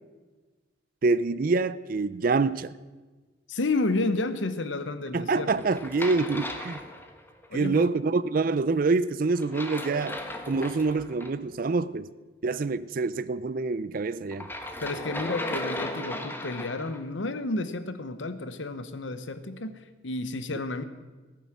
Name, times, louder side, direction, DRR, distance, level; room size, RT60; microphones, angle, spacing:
voice 1, 1.0-2.7 5.1-6.8 7.5-10.2 10.5-12.1 12.4-14.5, right 3 dB, 50° right, 0.4 m, -26 dB
voice 2, 3.5-5.6 7.5-7.9 14.8-20.8, left 2 dB, 85° left, 0.9 m, -31 dB
sound 1, 5.5-7.5 9.4-11.3 14.3-17.0, left 1 dB, 10° left, 1.2 m, -36 dB
16.0 x 9.5 x 7.3 m
head